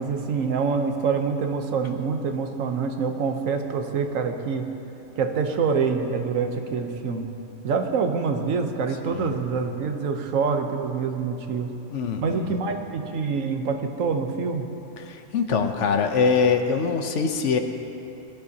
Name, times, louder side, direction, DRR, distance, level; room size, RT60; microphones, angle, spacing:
voice 1, 0.0-4.7 5.2-7.3 7.6-11.7 12.2-14.7, right 5 dB, 80° right, 5 dB, 1.2 m, -26 dB
voice 2, 11.9-12.6 15.0-17.6, left 5 dB, 70° left, 6 dB, 1.1 m, -23 dB
19.0 x 12.0 x 2.8 m, 2.9 s
omnidirectional pair, 1.3 m